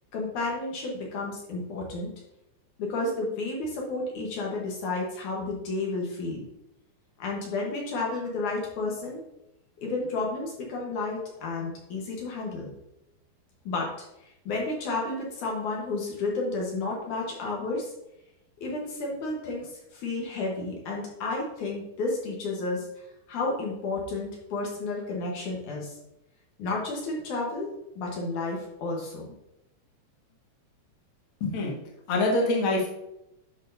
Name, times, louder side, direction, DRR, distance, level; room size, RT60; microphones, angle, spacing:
voice 1, 0.1-2.1 2.8-6.4 7.2-9.2 9.8-12.7 13.7-13.9 14.2-17.9 18.6-26.0 26.6-29.3, left 3 dB, 70° left, -2 dB, 2.5 m, -32 dB
voice 2, 31.4-31.7 32.1-32.9, left 2 dB, 45° left, -2 dB, 2.1 m, -24 dB
11.0 x 6.2 x 2.7 m, 0.87 s
omnidirectional pair, 3.9 m